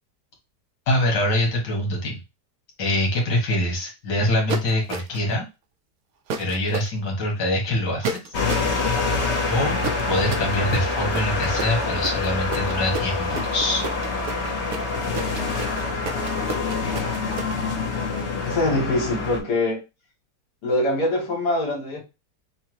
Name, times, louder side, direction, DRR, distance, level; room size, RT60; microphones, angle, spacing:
voice 1, 0.9-2.2 2.8-5.5 6.4-8.2 9.5-9.8 10.1-13.9, left 1 dB, 90° left, 2.1 m, -24 dB
sound 1, 4.5-5.3 6.3-6.9 8.0-8.7 9.8-17.5, right 4 dB, 65° right, 1.1 m, -31 dB
sound 2, 8.3-19.4, left 3 dB, 50° left, 1.1 m, -26 dB
voice 2, 18.4-19.8 20.6-22.0, left 2 dB, 70° left, 1.7 m, -23 dB
6.3 x 2.2 x 2.9 m
omnidirectional pair, 1.8 m